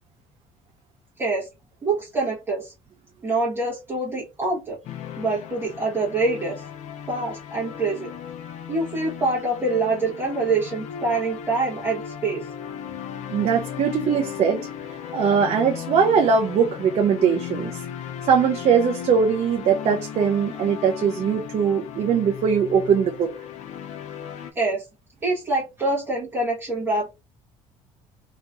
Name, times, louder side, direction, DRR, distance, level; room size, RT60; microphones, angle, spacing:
voice 1, 1.8-2.7 3.2-4.8 5.2-6.5 7.1-8.1 8.7-12.4 24.5-24.8 25.2-27.1, right 3 dB, 15° right, 1.2 m, -25 dB
sound 1, 4.8-24.5, left 9 dB, 60° left, 0.5 m, -36 dB
voice 2, 13.3-17.8 18.2-23.3, right 6 dB, 50° right, 0.5 m, -21 dB
2.9 x 2.8 x 2.4 m
cardioid pair, 130°, 14 cm